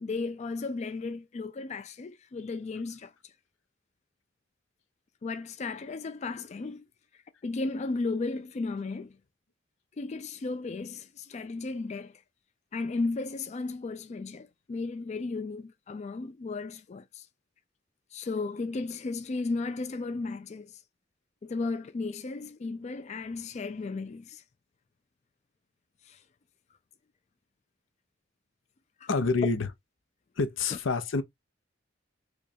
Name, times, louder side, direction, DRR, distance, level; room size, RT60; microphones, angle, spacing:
voice 1, 0.0-3.1 5.2-6.8 7.4-9.2 10.0-12.2 12.7-17.3 18.1-20.7 21.4-24.4 26.0-26.2 29.0-29.1, left 3 dB, 35° left, 0.3 m, -34 dB
voice 2, 29.1-29.7 30.4-31.2, left 4 dB, 85° left, 0.6 m, -27 dB
5.1 x 2.3 x 2.6 m
head